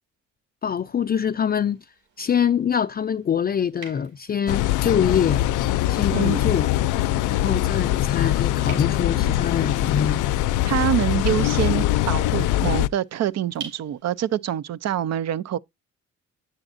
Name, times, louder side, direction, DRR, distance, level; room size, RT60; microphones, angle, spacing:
voice 1, 0.6-1.8 2.2-5.5 5.9-6.7 7.3-10.2, left 8 dB, 30° left, 0.4 m, -24 dB
sound 1, 0.9-14.4, right 6 dB, 80° right, 4.8 m, -49 dB
sound 2, 4.5-12.9, left 14 dB, 85° left, 0.5 m, -22 dB
voice 2, 6.1-6.4 10.7-15.6, right 11 dB, 60° right, 0.6 m, -25 dB
8.8 x 7.2 x 2.6 m
cardioid pair, 90°, 30 cm